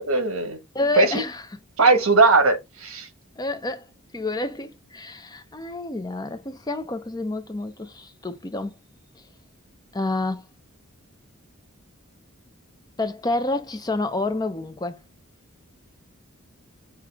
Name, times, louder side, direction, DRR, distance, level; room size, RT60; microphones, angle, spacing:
voice 1, 0.0-0.6 1.0-1.2 1.8-3.1, right 3 dB, 75° right, 1.2 m, -19 dB
voice 2, 0.7-1.4 3.4-3.8 4.1-8.8 9.9-10.4 13.0-15.0, left 2 dB, 20° left, 0.6 m, -28 dB
5.9 x 2.4 x 3.4 m
head